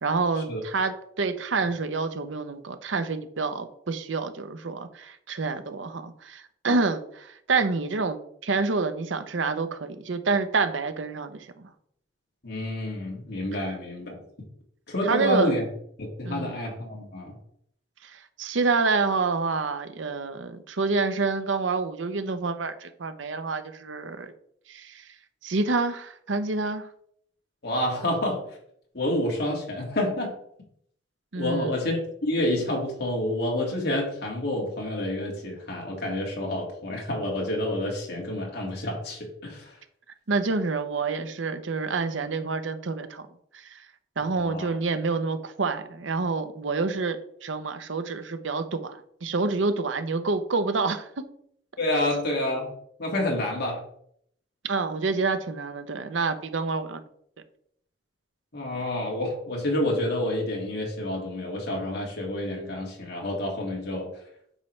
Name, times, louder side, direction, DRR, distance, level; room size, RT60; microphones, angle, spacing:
voice 1, 0.0-11.7 15.0-15.6 16.2-16.5 18.0-24.3 24.7-25.1 25.4-26.9 31.3-31.7 40.3-43.2 43.5-43.9 44.2-51.2 54.6-57.0, right 4 dB, 85° right, 10 dB, 0.8 m, -28 dB
voice 2, 12.4-14.1 14.9-15.6 16.0-17.3 27.6-28.4 28.9-30.3 31.4-39.7 44.4-44.7 51.8-52.7 53.0-53.8 58.5-64.1, left 1 dB, 60° left, -1 dB, 2.1 m, -28 dB
9.1 x 5.8 x 3.2 m, 0.68 s
head